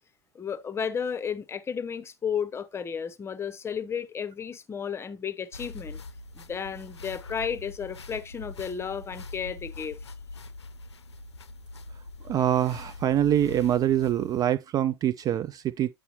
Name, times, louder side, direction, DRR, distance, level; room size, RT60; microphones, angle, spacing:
voice 1, 0.3-6.0 6.3-10.0, left 7 dB, 20° left, 0.8 m, -33 dB
sound 1, 5.5-14.5, left 3 dB, 80° left, 0.6 m, -43 dB
voice 2, 12.2-15.9, right 11 dB, 25° right, 0.4 m, -25 dB
8.2 x 6.1 x 2.8 m
figure-of-eight pair, 80°, 14 cm